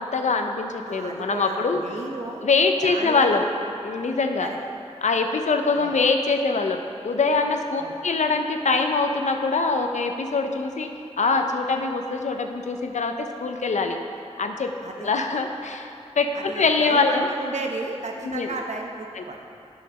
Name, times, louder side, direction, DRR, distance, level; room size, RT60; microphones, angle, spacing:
voice 1, 0.0-1.8 2.4-3.5 3.8-4.5 5.0-10.9 11.2-14.0 14.4-14.7 15.0-17.3 18.2-18.6 19.2-19.3, left 4 dB, 90° left, 5 dB, 0.6 m, -23 dB
voice 2, 0.8-2.4 2.8-3.4 4.4-4.6 5.7-5.9 7.8-8.0 14.8-15.1 16.3-19.4, right 3 dB, 75° right, 1 dB, 0.9 m, -33 dB
7.6 x 5.8 x 5.3 m, 2.6 s
wide cardioid pair, 50°, 12 cm